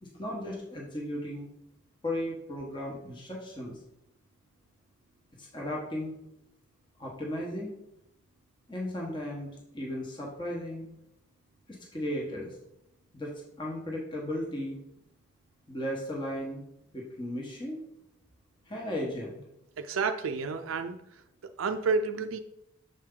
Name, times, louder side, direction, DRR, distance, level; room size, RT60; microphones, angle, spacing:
voice 1, 0.0-1.5 2.0-3.8 5.4-6.2 7.0-7.7 8.7-10.8 11.7-12.5 13.1-13.3 13.6-14.8 15.7-16.6 16.9-17.8 18.7-19.4, left 1 dB, 25° left, -2 dB, 1.1 m, -35 dB
voice 2, 19.8-21.0 21.6-22.4, right 4 dB, 90° right, 7 dB, 0.4 m, -30 dB
6.7 x 4.6 x 3.7 m, 0.81 s
head